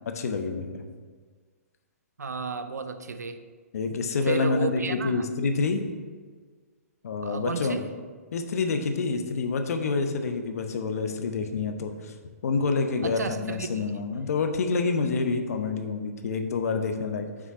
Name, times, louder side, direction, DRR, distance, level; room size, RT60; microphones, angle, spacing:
voice 1, 0.1-0.8 3.7-5.8 7.0-7.8 8.3-12.1 12.4-17.3, left 4 dB, 65° left, 6 dB, 0.7 m, -27 dB
voice 2, 2.2-3.4 4.3-5.2 7.2-7.9 13.0-13.9, right 3 dB, 85° right, 9 dB, 0.5 m, -32 dB
6.2 x 3.7 x 5.5 m, 1.5 s
hypercardioid pair, 130°, 9 cm